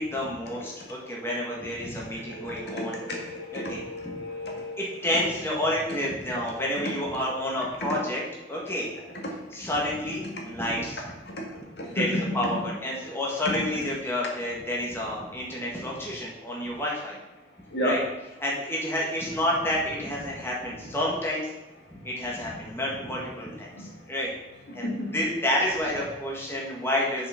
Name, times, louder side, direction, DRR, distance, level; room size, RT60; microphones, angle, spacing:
voice 1, 0.0-3.0 3.5-4.2 4.8-8.2 8.5-8.9 9.5-11.0 11.8-17.2 17.8-18.0 18.4-21.5 21.9-24.3 24.7-27.3, left 1 dB, 15° left, -4 dB, 1.7 m, -29 dB
voice 2, 2.2-4.9 6.8-6.9 9.2-9.4 11.8-12.1 17.7-18.0 23.7-23.9 24.7-25.2, equal, 70° left, 0 dB, 1.9 m, -32 dB
6.5 x 6.0 x 5.7 m, 1.1 s
head